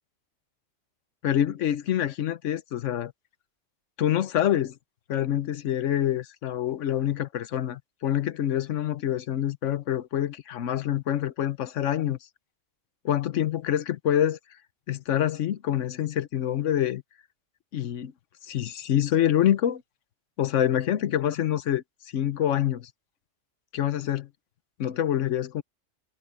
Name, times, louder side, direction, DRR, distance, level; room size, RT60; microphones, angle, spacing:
voice 1, 1.2-3.1 4.0-4.8 5.1-12.2 13.0-14.4 14.9-17.0 17.7-18.1 18.4-19.8 20.4-21.8 22.1-22.9 23.7-24.3 24.8-25.6, left 11 dB, 80° left, 1.1 m, -26 dB
omnidirectional pair, 1.3 m